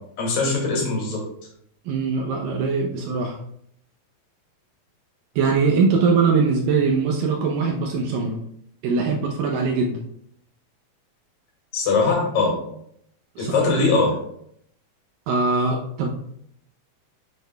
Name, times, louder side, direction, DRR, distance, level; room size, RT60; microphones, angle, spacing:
voice 1, 0.2-1.3 11.7-12.6 13.4-14.2, left 3 dB, 60° left, -2 dB, 3.8 m, -21 dB
voice 2, 1.9-3.4 5.4-8.4 8.8-10.0 13.4-13.5 15.3-16.1, right 4 dB, 75° right, 1 dB, 2.2 m, -21 dB
10.5 x 7.0 x 2.3 m, 0.71 s
omnidirectional pair, 4.5 m